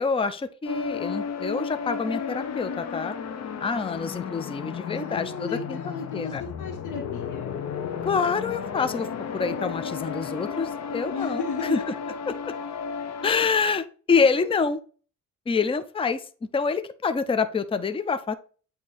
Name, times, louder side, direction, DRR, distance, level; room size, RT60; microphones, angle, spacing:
voice 1, 0.0-3.2 3.6-5.8 6.1-6.4 8.0-9.1 9.3-11.9 12.3-12.4 13.2-14.8 15.5-16.3 16.5-18.3, left 5 dB, 20° left, 11 dB, 0.5 m, -26 dB
sound 1, 0.6-13.3, left 6 dB, 60° left, 0.9 m, -33 dB
voice 2, 4.9-7.7 11.1-11.9, left 5 dB, 85° left, 0 dB, 1.5 m, -35 dB
8.6 x 2.9 x 4.1 m, 0.39 s
cardioid pair, 90°, 30 cm